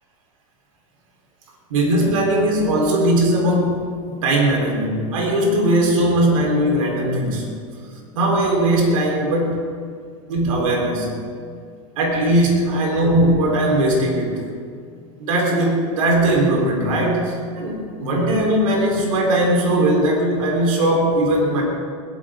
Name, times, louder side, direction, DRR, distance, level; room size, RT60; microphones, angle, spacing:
voice 1, 1.7-7.5 8.1-9.6 10.3-11.1 12.0-14.4 15.2-21.6, right 1 dB, 80° right, -1 dB, 4.2 m, -19 dB
21.5 x 12.0 x 3.8 m, 2.1 s
supercardioid pair, 120°, 17 cm